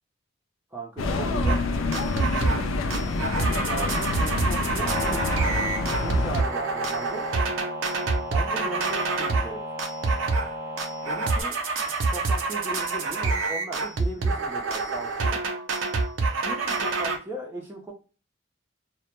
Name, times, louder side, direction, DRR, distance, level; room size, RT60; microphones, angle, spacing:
voice 1, 0.7-3.1 3.4-5.3 5.8-7.3 8.3-9.6 11.1-11.6 11.9-15.4 16.3-17.9, right 2 dB, 10° right, -2 dB, 0.5 m, -38 dB
sound 1, 1.0-6.4, left 3 dB, 85° left, 0.4 m, -27 dB
sound 2, 1.4-1.6 1.9-2.6 2.9-9.5 9.8-10.5 10.8-17.2, right 3 dB, 85° right, 0.5 m, -27 dB
sound 3, 4.8-11.4, equal, 70° left, 1.0 m, -34 dB
2.1 x 2.1 x 2.8 m, 0.34 s
head